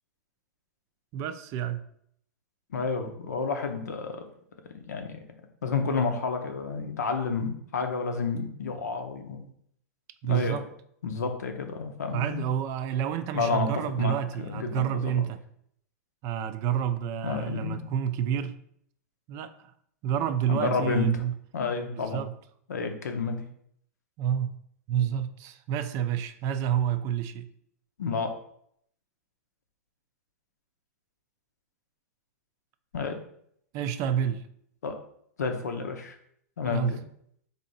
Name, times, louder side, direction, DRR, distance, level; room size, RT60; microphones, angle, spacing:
voice 1, 1.1-1.8 10.2-10.7 12.1-15.4 16.2-18.6 19.3-19.7 20.0-21.3 21.9-22.3 24.2-24.6 24.9-27.5 33.7-34.5 36.6-37.0, right 9 dB, 35° right, 0.3 m, -29 dB
voice 2, 2.7-4.2 4.7-5.2 5.6-9.5 10.3-10.6 11.0-12.4 13.3-13.7 14.0-15.1 17.2-17.9 20.5-21.2 21.5-22.2 22.7-23.4 28.0-28.3 32.9-33.2 34.8-34.9 35.4-36.1 36.6-37.0, left 4 dB, 85° left, 0.7 m, -30 dB
3.3 x 2.7 x 4.0 m
hypercardioid pair, 120°, 9 cm